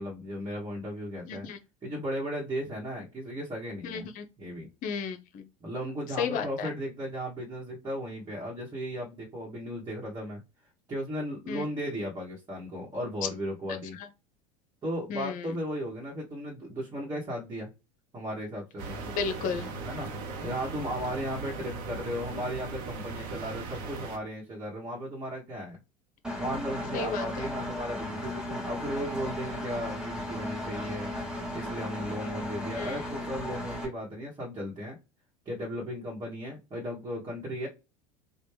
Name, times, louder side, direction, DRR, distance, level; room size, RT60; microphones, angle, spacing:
voice 1, 0.0-1.5 1.8-4.1 4.4-4.7 5.6-10.4 10.9-14.0 14.8-17.7 18.1-18.9 19.8-20.1 20.4-25.8 26.4-31.1 31.5-35.0 35.4-37.7, equal, 20° right, 1.3 m, -36 dB
voice 2, 1.2-1.6 3.8-4.3 4.8-5.5 6.2-6.7 11.5-11.6 13.2-13.3 14.0-14.1 15.1-15.5 19.1-19.7 26.9-27.2 32.8-33.1, left 6 dB, 45° left, 0.7 m, -33 dB
sound 1, 18.8-24.2, right 4 dB, 50° right, 0.9 m, -38 dB
Engine, 26.2-33.9, left 1 dB, 5° right, 1.1 m, -36 dB
3.3 x 2.3 x 3.2 m
figure-of-eight pair, 75°, 18 cm